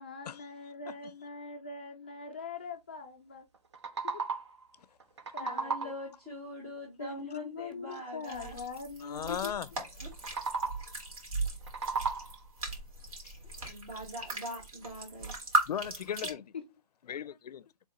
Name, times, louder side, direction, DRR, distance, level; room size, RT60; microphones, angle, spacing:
voice 1, 0.0-3.5 4.0-4.2 5.3-5.9 7.0-9.5 16.2-16.4, left 4 dB, 15° left, 0.4 m, -42 dB
sound 1, 3.5-4.7 5.0-6.1 10.1-11.0 11.5-12.6, right 4 dB, 45° right, 0.8 m, -36 dB
voice 2, 5.4-8.6 10.0-10.1 13.6-15.3, left 1 dB, 15° right, 1.1 m, -43 dB
sound 2, 8.2-16.3, right 2 dB, 60° right, 2.5 m, -37 dB
voice 3, 9.0-9.7 13.2-13.3 13.6-13.7 15.7-16.4 17.1-17.7, left 9 dB, 80° left, 0.4 m, -37 dB
3.6 x 3.5 x 4.1 m
hypercardioid pair, 175°, 20 cm